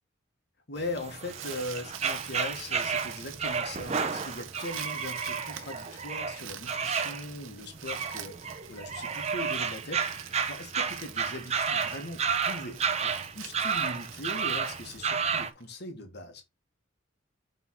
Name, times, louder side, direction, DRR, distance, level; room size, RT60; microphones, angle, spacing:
voice 1, 0.7-16.4, left 1 dB, 55° left, 1.5 m, -40 dB
sound 1, 0.8-15.5, right 6 dB, 35° right, 0.7 m, -32 dB
Crumpling crinkling, 1.0-15.6, right 11 dB, 85° right, 0.8 m, -46 dB
6.0 x 3.6 x 4.6 m
head